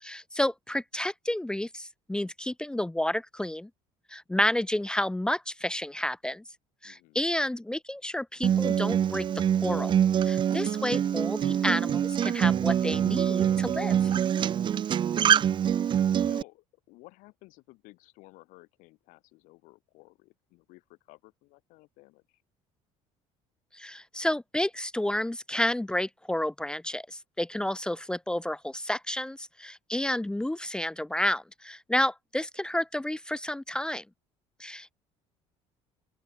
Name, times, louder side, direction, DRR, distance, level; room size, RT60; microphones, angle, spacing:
voice 1, 0.0-3.7 4.1-6.4 6.8-9.3 9.6-9.9 10.2-14.1 23.7-34.0 34.6-34.9, left 1 dB, 5° left, 0.7 m, -30 dB
voice 2, 6.8-7.2 10.7-10.9 16.2-22.4, left 22 dB, 80° left, 7.2 m, -55 dB
Acoustic guitar, 8.4-16.4, right 9 dB, 35° right, 0.6 m, -25 dB
open air
cardioid pair, 110°, 13 cm